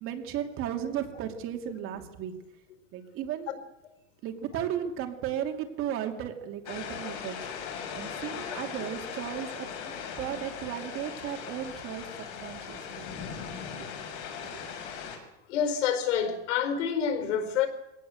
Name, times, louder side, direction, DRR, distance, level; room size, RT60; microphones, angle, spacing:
voice 1, 0.0-2.3 2.9-3.5 4.2-7.4 7.9-9.7 10.2-12.0 12.4-13.3 14.5-14.6, right 10 dB, 35° right, 2.7 m, -35 dB
sound 1, 6.7-15.2, left 7 dB, 50° left, 6.4 m, -39 dB
voice 2, 15.5-17.7, left 8 dB, 85° left, 4.8 m, -28 dB
23.0 x 18.0 x 7.8 m
supercardioid pair, 165°, 36 cm